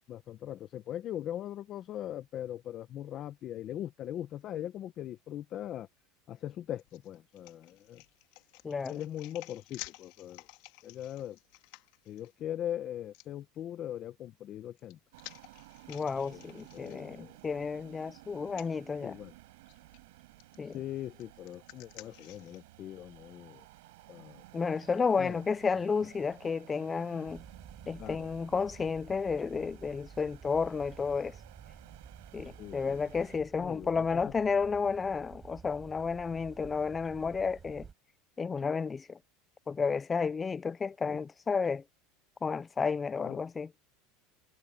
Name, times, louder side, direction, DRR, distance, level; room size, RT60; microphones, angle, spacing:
voice 1, 0.1-5.9 6.3-8.0 8.9-10.5 10.8-11.4 12.1-15.0 16.3-16.5 16.7-17.3 19.0-19.3 20.6-23.7 24.1-24.4 25.2-25.4 28.0-28.3 32.6-33.0 33.6-34.2 41.1-41.2 43.2-43.4, left 11 dB, 40° left, 1.1 m, -40 dB
sound 1, 6.8-12.3 13.1-13.3 14.4-17.5 17.8-17.9 18.5-18.7 19.7-20.0 20.4-22.6, left 23 dB, 65° left, 3.0 m, -52 dB
sound 2, 15.1-33.4, right 20 dB, 80° right, 7.9 m, -55 dB
voice 2, 15.9-19.2 20.6-20.8 24.5-27.4 27.9-31.4 32.3-37.9 38.4-39.2 39.7-41.8 42.4-43.7, left 5 dB, 15° left, 0.3 m, -32 dB
sound 3, 27.3-37.9, right 6 dB, 20° right, 4.5 m, -52 dB
supercardioid pair, 145°, 0 cm